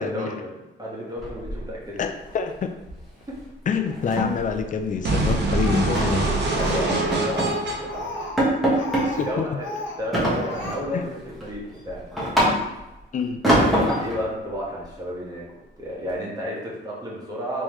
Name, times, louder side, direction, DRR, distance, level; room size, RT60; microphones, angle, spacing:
voice 1, 0.0-2.1 6.5-8.2 8.6-8.9 9.1-12.0 13.7-15.4 15.8-17.6, equal, 20° right, -5 dB, 1.3 m, -32 dB
sound 1, 1.2-2.0 2.3-2.5 2.9-3.1 3.4-3.5 3.9-5.4 5.9-6.2 6.7-7.6 7.9-8.0 8.4-9.1 10.1-10.9 11.3-12.9 13.4-14.2, equal, ahead, 1.4 m, -24 dB
voice 2, 2.0-2.7 3.7-6.3 9.1-9.4 10.9-11.1 13.1-13.4, left 6 dB, 40° left, 6 dB, 0.4 m, -26 dB
sound 2, 5.0-9.0, right 2 dB, 60° right, 0.7 m, -25 dB
Speech, 5.6-7.0 7.3-9.4 9.6-10.0 10.3-10.7, left 2 dB, 70° left, 0.9 m, -34 dB
3.6 x 3.1 x 3.1 m, 0.97 s
cardioid pair, 95°, 20 cm